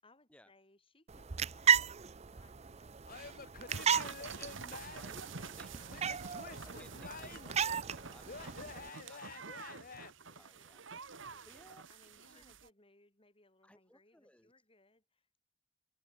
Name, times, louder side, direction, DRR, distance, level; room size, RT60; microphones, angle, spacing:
voice 1, 0.0-4.6 5.1-7.0 8.1-8.5 10.2-15.4, left 2 dB, 30° left, 7.6 m, -67 dB
sound 1, 1.1-8.9, right 7 dB, 35° right, 0.6 m, -35 dB
Male speech man speaking / Yell / Laughter, 3.1-5.2 5.9-7.6 8.3-10.1, left 4 dB, 45° left, 1.4 m, -49 dB
sound 2, 3.7-12.7, right 4 dB, 75° right, 1.8 m, -48 dB
voice 2, 4.9-5.3 5.5-11.8 12.2-12.4 13.6-14.5, left 1 dB, 5° left, 2.2 m, -62 dB
head